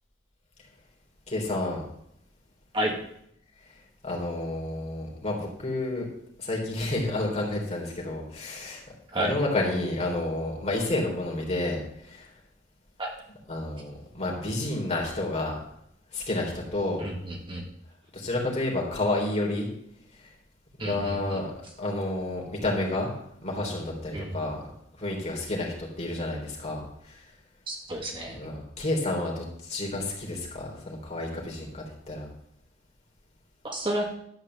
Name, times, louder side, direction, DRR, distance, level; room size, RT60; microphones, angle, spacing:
voice 1, 1.3-1.8 4.0-6.0 6.4-8.8 9.2-11.8 12.1-12.3 13.5-15.6 16.1-17.0 18.1-19.7 20.8-21.5 21.8-23.1 23.4-24.6 25.0-26.8 28.3-32.3, left 2 dB, 35° left, -2 dB, 3.4 m, -30 dB
voice 2, 17.0-17.6 20.8-21.4 24.1-24.4 27.7-28.4 33.6-34.1, right 1 dB, 25° right, 0 dB, 1.7 m, -31 dB
12.0 x 4.9 x 7.7 m, 0.73 s
head